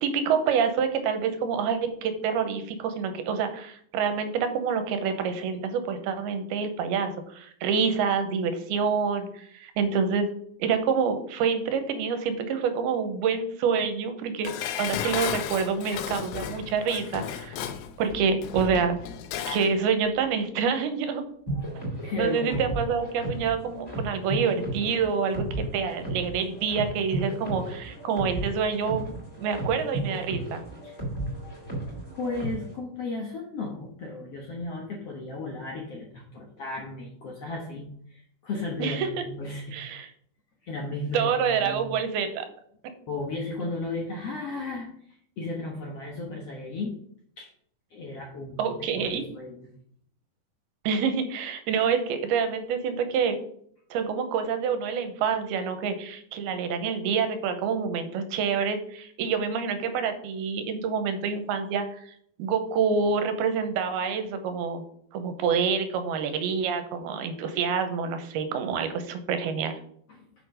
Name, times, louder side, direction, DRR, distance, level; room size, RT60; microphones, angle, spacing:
voice 1, 0.0-10.3 10.6-14.5 14.8-17.6 18.0-19.0 19.5-21.2 22.2-29.1 29.4-30.6 38.8-39.1 39.7-40.1 41.1-42.5 48.6-49.2 50.8-53.4 53.9-61.9 62.4-64.8 65.1-69.8, right 6 dB, 85° right, 8 dB, 2.8 m, -27 dB
Dishes pots and pans, 14.4-19.7 20.1-20.2, left 9 dB, 80° left, 2.6 m, -34 dB
sound 1, 21.5-32.7, right 1 dB, 10° left, 2.3 m, -34 dB
voice 2, 22.0-22.8 30.8-31.0 32.2-39.8 40.6-41.9 43.1-46.9 47.4-47.5 47.9-49.7 70.1-70.3, left 2 dB, 65° left, 0 dB, 1.5 m, -35 dB
6.8 x 6.4 x 5.1 m, 0.64 s
omnidirectional pair, 4.4 m